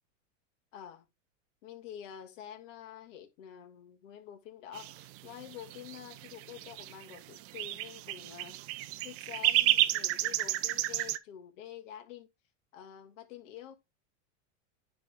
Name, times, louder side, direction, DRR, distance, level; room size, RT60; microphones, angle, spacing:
voice 1, 0.7-1.1 1.6-8.6 9.0-12.3 12.7-13.7, left 10 dB, 70° left, 1.8 m, -48 dB
sound 1, 4.7-11.2, right 16 dB, 35° right, 0.5 m, -31 dB
9.8 x 3.5 x 3.4 m
supercardioid pair, 135°, 39 cm